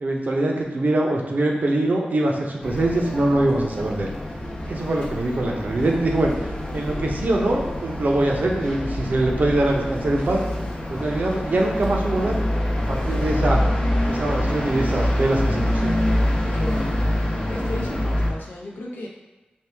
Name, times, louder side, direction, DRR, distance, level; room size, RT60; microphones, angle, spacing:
voice 1, 0.0-4.1 4.7-6.3 6.7-10.4 10.9-12.4 12.9-13.6 14.0-16.0, right 2 dB, 60° right, 0 dB, 0.6 m, -23 dB
sound 1, 2.6-18.3, left 1 dB, 30° left, 0.7 m, -26 dB
voice 2, 16.5-19.1, left 1 dB, 90° left, -3 dB, 0.7 m, -33 dB
4.5 x 2.3 x 3.4 m, 1.1 s
wide cardioid pair, 100°, 3 cm